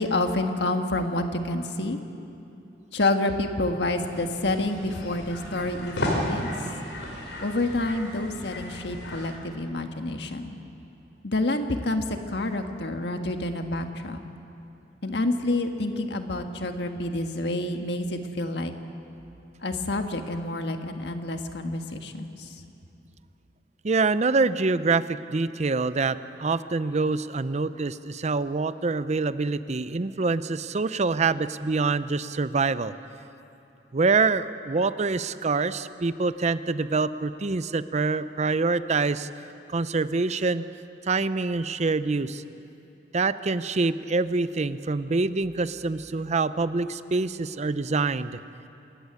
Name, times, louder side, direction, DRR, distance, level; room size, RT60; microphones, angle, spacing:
voice 1, 0.0-2.0 2.9-6.5 7.4-10.6 11.2-14.2 15.0-18.7 19.6-22.3, left 2 dB, 70° left, 5 dB, 1.6 m, -28 dB
sound 1, 4.0-9.3, left 1 dB, 85° left, 5.0 m, -34 dB
voice 2, 23.8-32.9 33.9-39.3 39.7-40.6 41.1-42.4 43.1-48.4, right 3 dB, 40° right, 14 dB, 0.6 m, -25 dB
26.5 x 14.5 x 9.8 m, 2.8 s
head